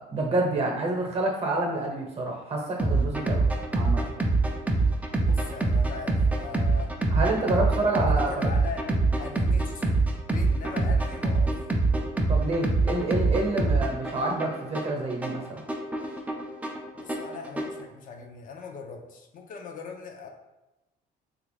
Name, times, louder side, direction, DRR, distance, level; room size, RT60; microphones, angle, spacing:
voice 1, 0.0-3.4 3.8-4.0 7.1-8.5 12.3-15.6, right 2 dB, 40° right, 0 dB, 0.8 m, -28 dB
sound 1, 2.8-17.8, right 3 dB, 10° right, 0.4 m, -25 dB
voice 2, 5.2-6.9 7.5-8.9 9.1-10.0 10.3-11.5 16.9-20.3, left 5 dB, 55° left, 2 dB, 0.5 m, -40 dB
3.3 x 2.4 x 3.2 m, 1.0 s
cardioid pair, 110°, 17 cm